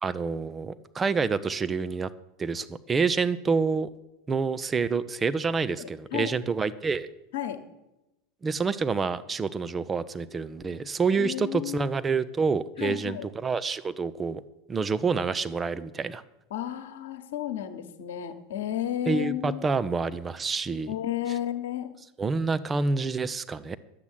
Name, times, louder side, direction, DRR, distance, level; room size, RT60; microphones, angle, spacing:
voice 1, 0.0-2.1 2.4-3.9 4.3-7.1 8.4-14.4 14.7-16.2 19.1-20.9 22.2-23.8, right 4 dB, 20° right, 14 dB, 0.8 m, -27 dB
voice 2, 5.8-6.3 7.3-7.6 11.1-11.9 12.8-13.3 16.5-19.6 20.9-21.9, left 11 dB, 65° left, 8 dB, 1.4 m, -32 dB
11.5 x 8.3 x 9.1 m, 0.95 s
figure-of-eight pair, 80°, 0 cm